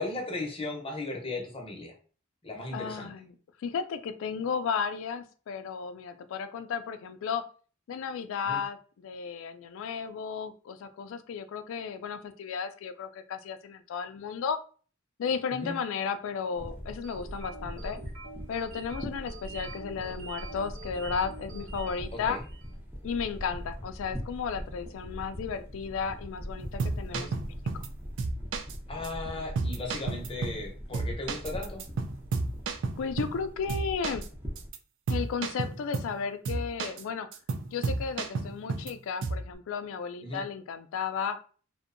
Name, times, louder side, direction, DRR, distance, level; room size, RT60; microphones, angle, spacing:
voice 1, 0.0-1.9 2.4-3.1 8.4-8.6 15.5-15.8 22.3-22.4 27.1-27.3 28.9-31.8 40.2-40.4, left 2 dB, 25° left, 0 dB, 0.7 m, -36 dB
voice 2, 2.7-7.4 7.9-14.6 15.2-18.0 18.5-22.4 23.0-27.5 33.0-34.2 35.1-37.3 37.7-41.4, left 6 dB, 70° left, 10 dB, 0.3 m, -34 dB
sound 1, 16.5-34.7, equal, 10° right, 0.5 m, -41 dB
sound 2, 17.0-22.8, right 4 dB, 75° right, 0.8 m, -46 dB
sound 3, 26.6-27.9 28.2-28.7 29.0-29.1 29.6-30.7 30.9-33.4 33.7-34.3 34.6-34.8 35.1-36.2 36.4-37.0 37.3-38.9 39.2-39.5, right 3 dB, 60° right, 0.4 m, -32 dB
2.6 x 2.1 x 2.5 m, 0.40 s
head